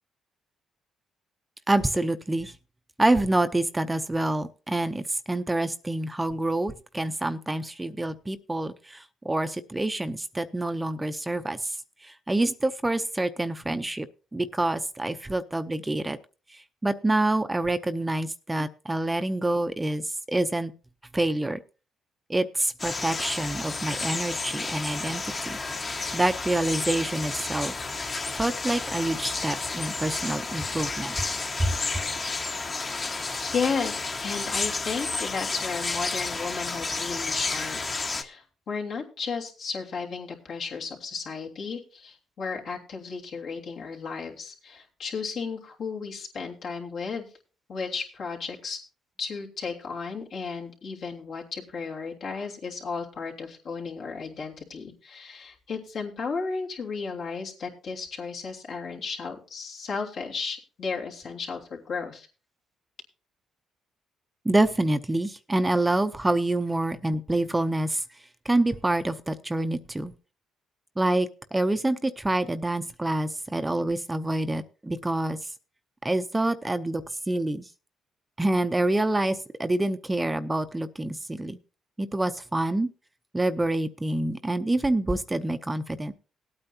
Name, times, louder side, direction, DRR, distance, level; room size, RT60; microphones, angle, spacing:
voice 1, 1.7-2.6 3.0-14.1 14.3-16.2 16.5-20.7 21.1-21.6 22.3-25.6 25.8-27.7 28.3-31.2 31.6-32.0 64.4-68.0 68.4-70.1 71.0-75.5 76.0-77.7 78.4-81.6 82.0-82.9 83.3-86.1, right 2 dB, 15° right, 10 dB, 0.7 m, -27 dB
sound 1, 22.8-38.2, left 3 dB, 35° left, 1.4 m, -31 dB
voice 2, 33.4-47.3 47.7-48.8 49.2-62.3, left 5 dB, 65° left, -1 dB, 3.1 m, -34 dB
19.0 x 8.8 x 2.8 m, 0.34 s
cardioid pair, 90°, 0 cm